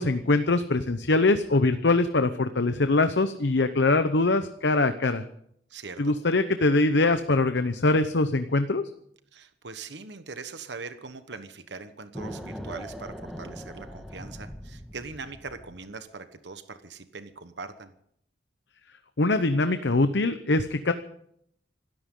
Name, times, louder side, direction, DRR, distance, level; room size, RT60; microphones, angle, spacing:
voice 1, 0.0-5.2 6.0-8.8 19.2-20.9, left 2 dB, 80° left, 10 dB, 0.9 m, -23 dB
voice 2, 5.7-6.1 9.3-17.9, right 4 dB, 80° right, 10 dB, 1.2 m, -41 dB
sound 1, 12.1-15.9, equal, ahead, 1.8 m, -40 dB
26.5 x 13.5 x 3.8 m, 0.70 s
head